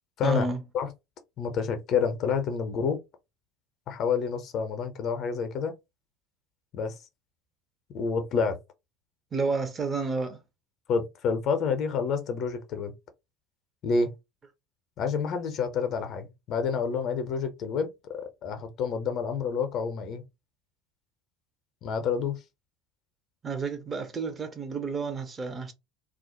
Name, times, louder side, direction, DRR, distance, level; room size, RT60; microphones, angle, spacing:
voice 1, 0.2-0.6 9.3-10.4 23.4-25.7, right 4 dB, 25° right, 0.5 m, -30 dB
voice 2, 1.4-3.0 3.9-5.7 6.7-7.0 7.9-8.6 10.9-12.9 13.8-14.1 15.0-20.2 21.8-22.4, left 5 dB, 45° left, 0.5 m, -28 dB
2.3 x 2.0 x 2.9 m
figure-of-eight pair, 70°, 0 cm